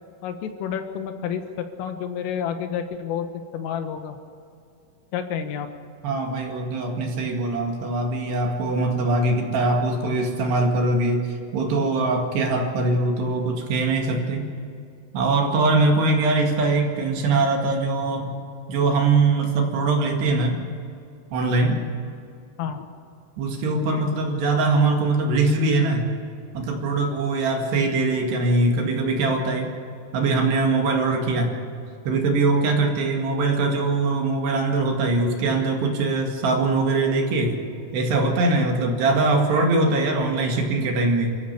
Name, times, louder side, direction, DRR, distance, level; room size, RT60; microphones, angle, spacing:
voice 1, 0.2-3.3 3.5-4.2 5.1-5.7 22.6-22.9 23.8-24.1, left 8 dB, 80° left, 7 dB, 3.9 m, -30 dB
voice 2, 6.0-14.5 15.1-18.3 18.7-20.6 21.3-21.8 23.4-26.1 26.5-29.7 30.1-31.5 32.1-37.6 37.9-41.4, right 3 dB, 60° right, 2 dB, 3.8 m, -22 dB
28.0 x 15.0 x 6.8 m, 2.5 s
omnidirectional pair, 5.9 m